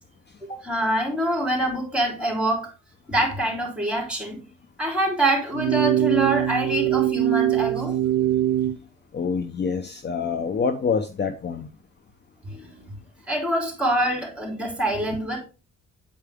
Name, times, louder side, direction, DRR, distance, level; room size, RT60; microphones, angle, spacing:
voice 1, 0.5-2.7 3.1-4.4 4.8-8.0 12.4-12.9 13.3-15.4, right 1 dB, 5° right, 1 dB, 3.5 m, -25 dB
sound 1, 5.5-8.8, right 12 dB, 85° right, 0.5 m, -22 dB
voice 2, 9.1-11.7, left 5 dB, 35° left, 8 dB, 0.7 m, -26 dB
8.8 x 4.7 x 3.5 m, 0.33 s
cardioid pair, 90°, 30 cm